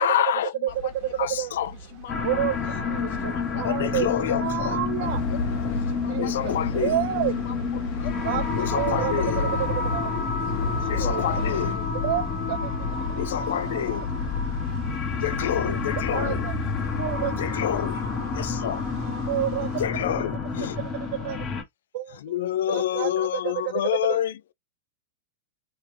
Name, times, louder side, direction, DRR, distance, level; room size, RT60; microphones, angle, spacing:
voice 1, 0.0-0.5 1.2-1.7 3.6-4.8 6.2-7.0 8.6-9.6 10.9-11.9 13.2-14.1 15.2-16.4 17.4-18.8 19.8-20.8 22.2-24.3, left 11 dB, 80° left, 0.3 m, -28 dB
voice 2, 0.5-1.4 1.7-2.7 3.0-4.1 4.6-5.4 5.7-6.8 7.3-8.1 8.4-9.0 9.4-9.5 9.9-10.2 10.5-10.9, left 9 dB, 55° left, 0.9 m, -44 dB
sound 1, 0.7-19.9, right 4 dB, 40° right, 1.1 m, -41 dB
sound 2, 2.1-21.6, left 5 dB, 25° left, 0.9 m, -29 dB
voice 3, 2.2-2.5 2.9-5.2 6.1-7.4 8.2-8.4 8.7-9.1 9.9-10.1 10.8-11.5 11.9-12.7 13.5-13.8 16.1-16.6 17.0-17.3 19.3-19.9 21.2-21.4 21.9-23.7 24.1-24.2, right 13 dB, 60° right, 0.5 m, -30 dB
sound 3, 5.0-11.8, left 3 dB, 40° left, 1.2 m, -32 dB
3.2 x 2.1 x 3.3 m
supercardioid pair, 145°, 0 cm